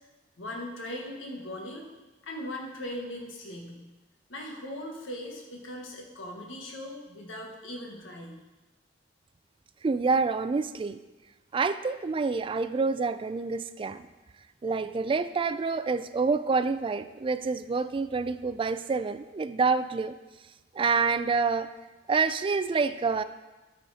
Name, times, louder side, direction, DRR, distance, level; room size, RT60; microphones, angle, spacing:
voice 1, 0.4-1.9 2.2-3.9 4.3-8.3, left 1 dB, 90° left, 0 dB, 1.4 m, -39 dB
voice 2, 9.8-11.0 11.5-14.1 14.6-20.1 20.7-21.7 22.1-23.2, right 4 dB, 25° right, 12 dB, 0.3 m, -27 dB
13.0 x 4.3 x 4.1 m, 1.2 s
head